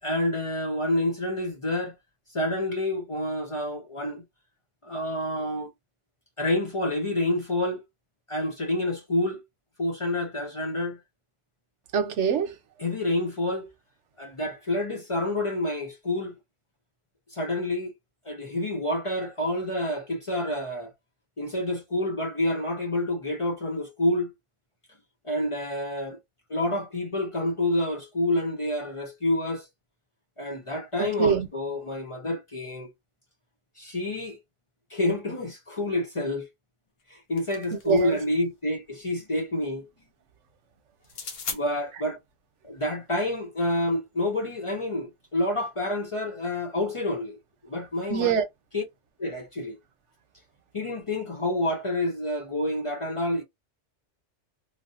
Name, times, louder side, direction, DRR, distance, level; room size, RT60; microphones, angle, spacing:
voice 1, 0.0-1.9 2.3-4.2 4.8-5.7 6.4-7.8 8.3-9.4 9.8-11.0 12.8-13.7 14.2-16.3 17.3-17.9 18.3-20.9 21.4-24.3 25.2-26.2 26.5-29.7 30.4-32.9 33.8-34.4 34.9-36.5 37.1-39.9 41.5-42.2 42.6-47.4 47.6-48.3 48.7-48.8 49.2-49.8 50.7-53.4, left 1 dB, 35° left, 0.5 m, -28 dB
voice 2, 11.9-12.6 31.0-31.5 37.7-38.2 48.1-48.4, right 7 dB, 90° right, 1.0 m, -24 dB
sound 1, 37.0-38.3 41.0-41.6, left 5 dB, 60° left, 0.9 m, -38 dB
3.3 x 2.6 x 2.5 m
omnidirectional pair, 1.2 m